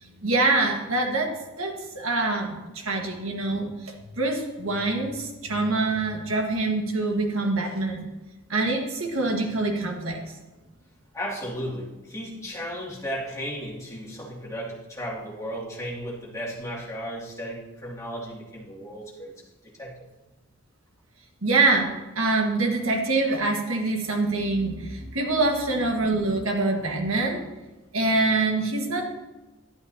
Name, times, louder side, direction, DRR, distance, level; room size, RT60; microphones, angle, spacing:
voice 1, 0.2-8.0 8.5-10.2 21.4-27.4 27.9-29.1, right 2 dB, 85° right, 2 dB, 1.6 m, -25 dB
voice 2, 11.1-20.1, equal, 15° left, -5 dB, 2.5 m, -35 dB
11.5 x 11.0 x 2.8 m, 1.1 s
head